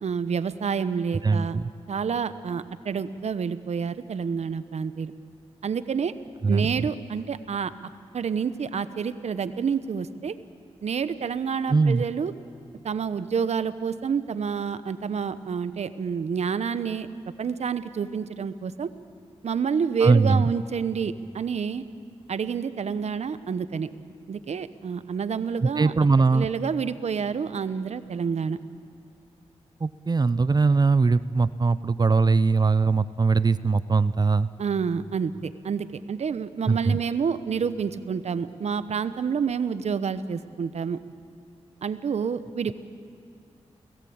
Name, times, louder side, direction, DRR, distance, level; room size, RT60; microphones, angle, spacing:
voice 1, 0.0-1.6 1.9-5.1 5.6-6.1 6.5-7.7 8.1-10.3 10.8-12.3 12.8-17.1 17.4-18.9 19.4-21.8 22.3-23.9 24.3-25.9 26.3-28.6 34.6-41.0 41.8-42.7, right 6 dB, 75° right, 13 dB, 1.0 m, -28 dB
voice 2, 1.2-1.7 6.4-6.9 11.7-12.0 20.0-20.5 25.6-26.5 29.8-34.5 36.7-37.0, right 4 dB, 35° right, 15 dB, 0.6 m, -21 dB
29.5 x 17.5 x 8.7 m, 2.4 s
cardioid pair, 70°, 11 cm